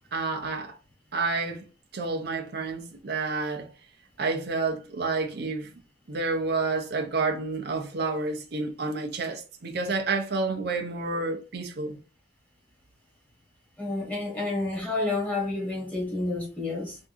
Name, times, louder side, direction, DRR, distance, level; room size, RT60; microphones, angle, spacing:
voice 1, 0.1-0.7 1.1-1.6 1.9-3.7 4.2-5.7 6.1-12.0, right 3 dB, 60° right, 0.6 m, -29 dB
voice 2, 13.8-17.0, left 2 dB, 10° left, 1.5 m, -29 dB
3.5 x 2.6 x 2.6 m
head